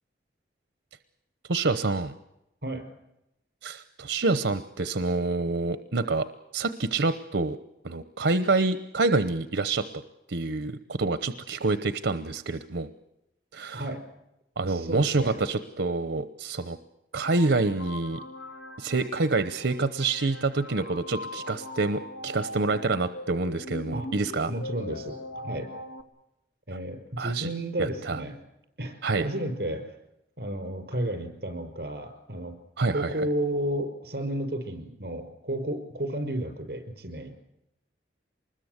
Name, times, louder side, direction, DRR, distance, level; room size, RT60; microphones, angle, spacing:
voice 1, 1.5-2.1 3.6-6.2 6.5-7.6 7.8-9.8 10.3-12.9 13.5-13.8 14.6-16.8 17.1-18.2 18.8-24.5 27.2-27.5 27.8-28.2 29.0-29.3 32.8-33.1, right 3 dB, 90° right, 12 dB, 0.9 m, -27 dB
voice 2, 13.7-14.0 14.6-15.4 23.9-24.1 24.5-25.2 25.4-25.7 26.7-28.3 28.8-30.0 30.4-32.5 32.9-37.3, right 1 dB, 60° right, 7 dB, 5.4 m, -32 dB
sound 1, 17.3-26.0, left 1 dB, 65° left, 2.5 m, -41 dB
25.0 x 21.0 x 8.1 m, 0.89 s
head